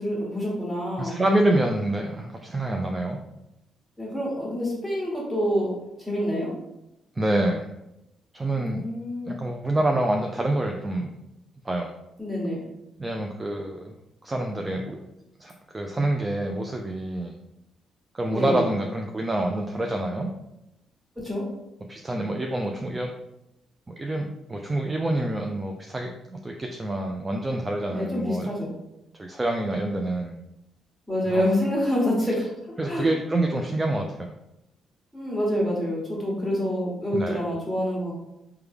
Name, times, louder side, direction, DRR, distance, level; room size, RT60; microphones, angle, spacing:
voice 1, 0.0-1.2 4.0-5.7 6.0-6.5 8.5-9.4 12.2-12.6 18.3-18.7 21.2-21.4 27.9-28.7 31.1-32.5 32.9-33.1 35.1-38.1, equal, ahead, -5 dB, 1.4 m, -27 dB
voice 2, 1.0-3.2 7.2-7.7 8.3-8.8 9.3-11.1 11.6-11.9 13.0-13.9 14.2-15.0 15.4-17.3 18.1-20.3 21.9-23.1 24.0-28.5 29.1-30.4 31.3-31.5 32.8-34.3 37.1-37.4, right 1 dB, 20° right, 2 dB, 0.3 m, -27 dB
3.3 x 2.2 x 3.4 m, 0.88 s
cardioid pair, 90°, 0 cm